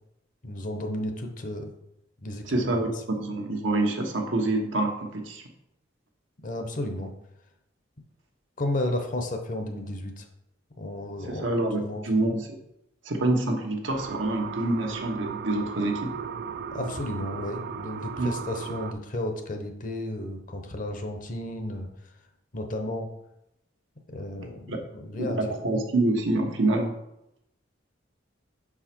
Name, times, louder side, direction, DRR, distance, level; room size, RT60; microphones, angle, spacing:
voice 1, 0.4-1.7 2.2-2.5 2.7-2.9 6.4-7.1 8.6-10.2 10.8-11.5 11.8-12.0 16.7-21.9 22.5-23.1 24.1-25.5, left 1 dB, 45° left, 5 dB, 0.8 m, -33 dB
voice 2, 2.4-2.9 3.2-5.4 11.2-12.6 13.0-16.1 18.2-18.3 24.4-24.8 25.3-26.9, right 2 dB, 80° right, 2 dB, 1.1 m, -26 dB
sound 1, 13.9-18.9, right 6 dB, 55° right, 0.4 m, -36 dB
6.0 x 4.8 x 4.4 m, 0.84 s
head